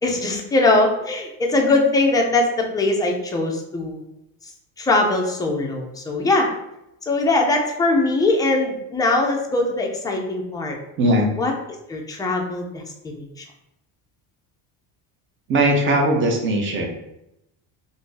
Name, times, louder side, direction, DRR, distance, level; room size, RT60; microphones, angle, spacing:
voice 1, 0.0-4.0 4.8-6.5 7.0-10.8 11.4-12.8 13.1-13.4, left 2 dB, 10° left, 0 dB, 0.3 m, -21 dB
voice 2, 11.0-11.3 15.5-16.9, right 1 dB, 30° right, 1 dB, 0.6 m, -19 dB
2.6 x 2.5 x 3.7 m, 0.84 s
cardioid pair, 145°, 40 cm